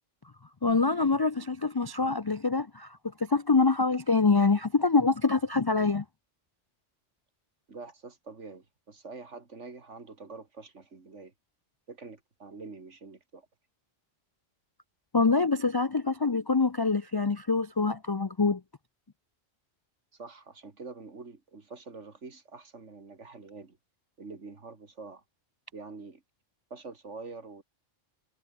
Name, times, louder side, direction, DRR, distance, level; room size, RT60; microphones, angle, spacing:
voice 1, 0.6-6.0 15.1-18.6, left 4 dB, 40° left, 0.3 m, -25 dB
voice 2, 7.7-11.3 11.9-13.5 20.1-23.8 24.2-25.2 25.7-26.2 26.7-27.6, right 4 dB, 70° right, 2.9 m, -45 dB
omnidirectional pair, 1.3 m